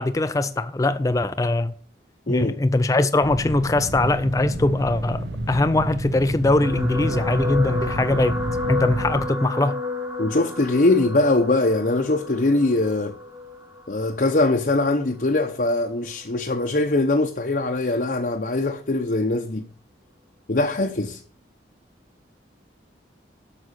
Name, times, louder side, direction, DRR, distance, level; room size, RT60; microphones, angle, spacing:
voice 1, 0.0-1.7 2.3-8.4 8.7-9.8, left 2 dB, 20° left, 0.4 m, -21 dB
voice 2, 2.3-2.6 10.2-13.1 13.9-19.6 20.5-21.2, left 2 dB, 50° left, 0.8 m, -22 dB
sound 1, 3.2-9.2, right 1 dB, 80° right, 1.4 m, -30 dB
sound 2, 6.6-15.1 15.8-16.1 16.3-16.4, left 2 dB, 15° right, 1.2 m, -31 dB
8.3 x 6.2 x 6.3 m
head